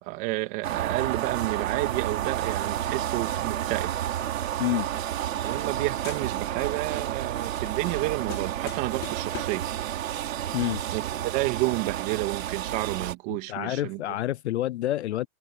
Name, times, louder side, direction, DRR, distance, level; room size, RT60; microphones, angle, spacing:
voice 1, 0.0-3.9 5.4-9.7 10.9-14.0, right 22 dB, 30° right, 2.8 m, -30 dB
sound 1, 0.6-13.1, right 11 dB, 65° right, 4.6 m, -30 dB
sound 2, 4.4-5.8 6.0-6.7 7.0-9.7, left 18 dB, 25° left, 6.8 m, -45 dB
voice 2, 13.5-15.3, left 14 dB, 55° left, 0.7 m, -28 dB
hypercardioid pair, 170°, 42 cm